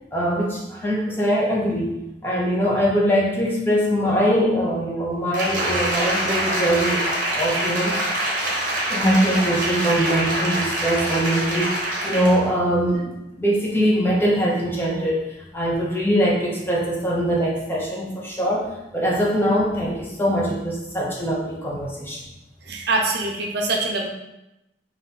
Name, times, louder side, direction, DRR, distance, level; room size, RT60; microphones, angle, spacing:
voice 1, 0.1-1.9 2.2-7.1 7.3-8.0 8.9-15.3 15.5-18.7 18.9-22.2, equal, 15° left, -4 dB, 0.8 m, -22 dB
Applause, 5.3-12.5 12.9-13.0, right 1 dB, 50° right, 1.0 m, -25 dB
voice 2, 22.6-24.1, right 2 dB, 65° right, 1 dB, 0.6 m, -24 dB
5.3 x 2.7 x 2.9 m, 0.92 s
head